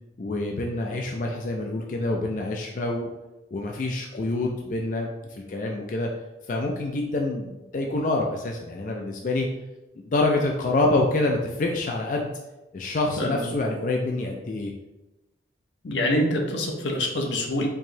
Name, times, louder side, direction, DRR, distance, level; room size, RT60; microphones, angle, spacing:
voice 1, 0.2-3.1 3.5-6.1 6.5-9.5 10.1-12.3 12.7-14.7, left 2 dB, 45° left, 0 dB, 0.3 m, -26 dB
voice 2, 15.8-17.7, left 1 dB, 85° left, 1 dB, 0.7 m, -25 dB
4.6 x 3.0 x 2.6 m, 1.0 s
head